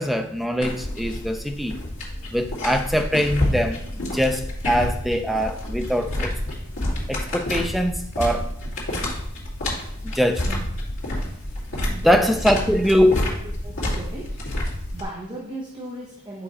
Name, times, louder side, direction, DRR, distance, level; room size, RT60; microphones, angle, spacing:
voice 1, 0.0-1.8 2.3-3.8 4.1-6.3 7.1-8.5 10.0-10.7 11.8-13.2, equal, ahead, 5 dB, 0.4 m, -22 dB
sound 1, 0.6-15.0, left 1 dB, 60° left, 2.1 m, -29 dB
voice 2, 11.9-12.2 12.5-12.6 12.8-13.3 13.6-14.4 14.9-16.4, right 1 dB, 20° right, -2 dB, 0.8 m, -36 dB
5.0 x 4.8 x 4.1 m, 0.74 s
head